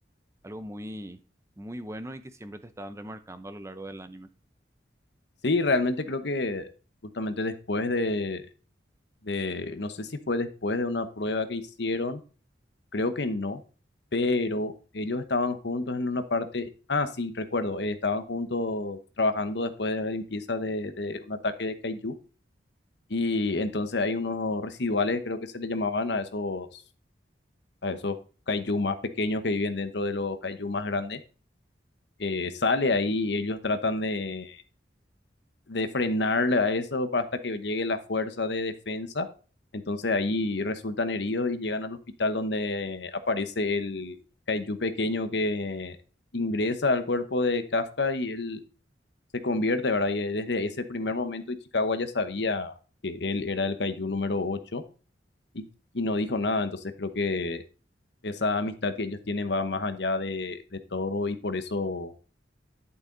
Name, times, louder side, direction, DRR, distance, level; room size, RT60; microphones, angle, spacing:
voice 1, 0.4-1.2 1.6-4.3, right 1 dB, 15° right, 10 dB, 0.7 m, -40 dB
voice 2, 5.4-6.7 7.1-8.4 9.2-12.2 12.9-13.6 14.1-22.1 23.1-26.8 27.8-28.2 28.5-31.2 32.2-34.6 35.7-39.3 39.7-44.2 44.5-46.0 46.3-48.6 49.4-52.7 53.0-54.8 55.5-55.6 55.9-57.6 58.2-62.1, left 3 dB, 65° left, 10 dB, 1.0 m, -28 dB
11.0 x 6.9 x 3.9 m, 0.37 s
head